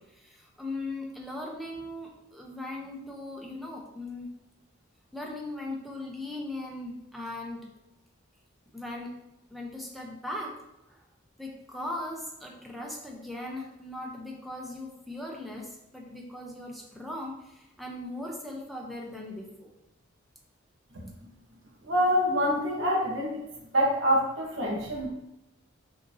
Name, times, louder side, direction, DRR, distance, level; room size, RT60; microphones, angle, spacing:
voice 1, 0.0-4.3 5.1-7.7 8.7-9.1 9.5-10.6 10.9-11.0 11.4-19.7, left 1 dB, ahead, -2 dB, 0.7 m, -39 dB
voice 2, 21.8-23.4 23.7-25.1, equal, 70° right, -2 dB, 1.1 m, -26 dB
5.5 x 2.9 x 2.7 m, 0.90 s
head